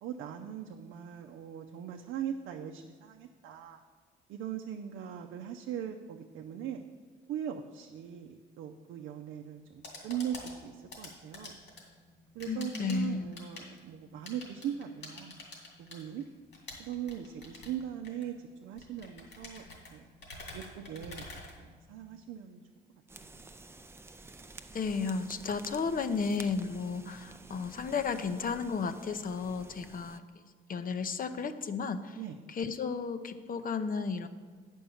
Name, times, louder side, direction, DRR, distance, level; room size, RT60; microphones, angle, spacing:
voice 1, 0.0-3.8 4.3-6.8 7.3-11.5 12.3-15.4 15.8-16.3 16.8-19.6 19.9-20.1 20.5-21.2 21.6-22.6 23.2-23.4 32.2-32.4, right 9 dB, 85° right, 2 dB, 0.6 m, -40 dB
sound 1, 9.6-22.2, left 2 dB, 65° left, 2.6 m, -49 dB
voice 2, 12.5-13.3 24.7-32.2 32.5-34.3, left 5 dB, 45° left, 9 dB, 0.6 m, -33 dB
sound 2, 23.1-30.2, right 3 dB, 10° right, 0.4 m, -51 dB
8.8 x 5.4 x 7.0 m, 1.5 s
cardioid pair, 90°, 20 cm